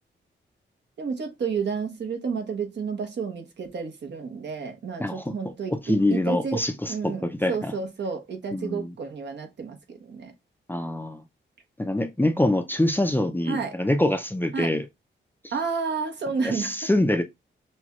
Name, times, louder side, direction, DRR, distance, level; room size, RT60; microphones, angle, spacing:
voice 1, 1.0-10.3 13.5-13.8 14.5-14.7 15.5-16.9, right 5 dB, 65° right, 1.1 m, -31 dB
voice 2, 5.0-5.5 5.9-7.5 8.5-8.9 10.7-11.2 11.8-14.9 16.5-17.2, left 1 dB, 10° left, 0.5 m, -25 dB
6.1 x 2.3 x 3.0 m
wide cardioid pair, 105°, 19 cm